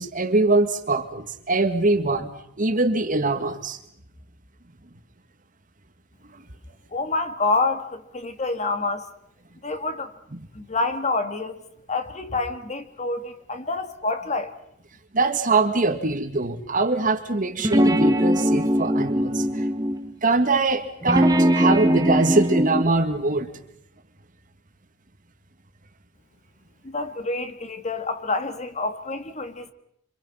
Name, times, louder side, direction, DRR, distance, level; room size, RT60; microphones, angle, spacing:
voice 1, 0.0-3.8 15.1-19.6 20.2-23.5, right 3 dB, 40° right, 1.9 m, -23 dB
voice 2, 6.9-9.1 9.6-10.1 10.5-11.6 11.9-14.5 26.8-29.7, left 3 dB, 35° left, 1.7 m, -27 dB
sound 1, 17.6-20.0 21.0-22.8, equal, 20° right, 1.3 m, -20 dB
27.0 x 26.0 x 5.7 m
head